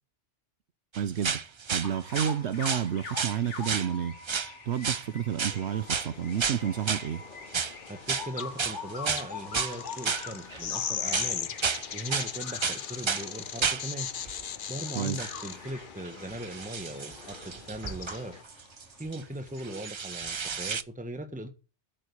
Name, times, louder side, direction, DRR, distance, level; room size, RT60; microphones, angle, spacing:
sound 1, 0.9-2.4 2.6-3.4 3.6-3.9 4.2-4.5 4.8-5.1 5.4-5.6 5.9-6.1 6.4-7.1 7.5-7.7 8.1-8.3 8.6-9.7 10.1-10.7 11.1-11.8 12.1-12.3 12.6-13.3 13.6-13.8 14.3-14.4 15.2-15.3 15.7-19.2 19.6-20.8, right 6 dB, 35° right, 0.4 m, -32 dB
voice 1, 0.9-1.4 1.7-4.1 4.7-7.2 15.0-15.2, right 9 dB, 75° right, 1.0 m, -30 dB
sound 2, 1.8-19.9, left 4 dB, 85° left, 1.9 m, -45 dB
sound 3, 5.4-18.4, left 8 dB, 50° left, 0.8 m, -39 dB
voice 2, 7.9-11.5 11.9-14.1 14.7-18.3 19.0-21.5, right 1 dB, 5° right, 1.3 m, -39 dB
8.4 x 7.7 x 8.5 m
omnidirectional pair, 1.2 m